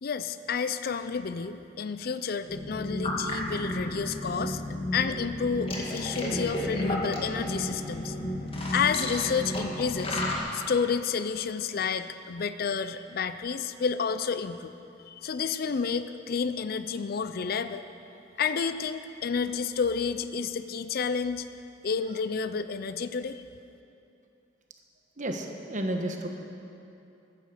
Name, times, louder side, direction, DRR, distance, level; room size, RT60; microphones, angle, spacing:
voice 1, 0.0-4.6 4.9-8.2 8.7-10.2 10.5-14.7 15.1-17.8 18.4-21.5 21.8-23.4, left 6 dB, 55° left, 11 dB, 0.5 m, -30 dB
sound 1, 2.5-10.4, left 1 dB, 30° left, 1.9 m, -32 dB
voice 2, 25.2-26.3, right 1 dB, 45° right, 4 dB, 1.2 m, -32 dB
15.0 x 9.5 x 6.5 m, 2.8 s
head